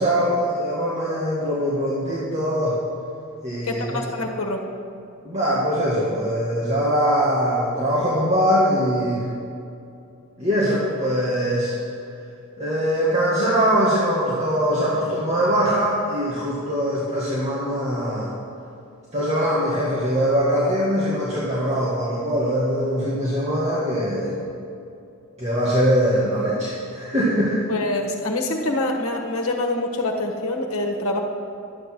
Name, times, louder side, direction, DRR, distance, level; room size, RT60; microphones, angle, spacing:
voice 1, 0.0-2.8 3.4-4.1 5.3-9.2 10.4-11.7 12.6-18.3 19.1-24.3 25.4-27.6, equal, 30° right, -8 dB, 1.8 m, -22 dB
voice 2, 3.6-4.6 27.7-31.2, left 2 dB, 85° left, 1 dB, 1.4 m, -25 dB
12.0 x 8.2 x 6.1 m, 2.6 s
head